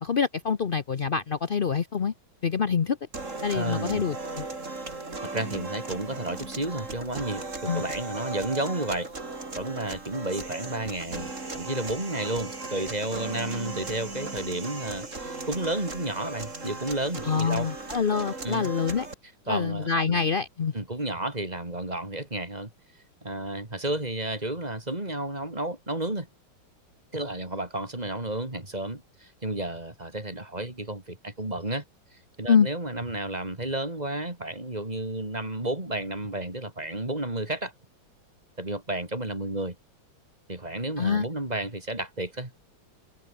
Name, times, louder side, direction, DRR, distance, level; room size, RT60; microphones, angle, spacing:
voice 1, 0.0-2.1 2.4-3.0 3.4-4.4 7.7-7.8 17.2-19.1 19.5-20.7 32.5-32.7 41.0-41.2, left 6 dB, 65° left, 0.5 m, -25 dB
sound 1, 3.1-19.1, right 3 dB, 35° right, 4.0 m, -37 dB
voice 2, 3.5-4.1 5.2-9.1 9.6-17.7 18.4-18.7 19.5-20.2 20.7-22.7 23.2-26.3 27.1-31.8 32.4-37.7 38.6-39.8 40.5-42.6, right 1 dB, 20° right, 3.7 m, -32 dB
omnidirectional pair, 2.3 m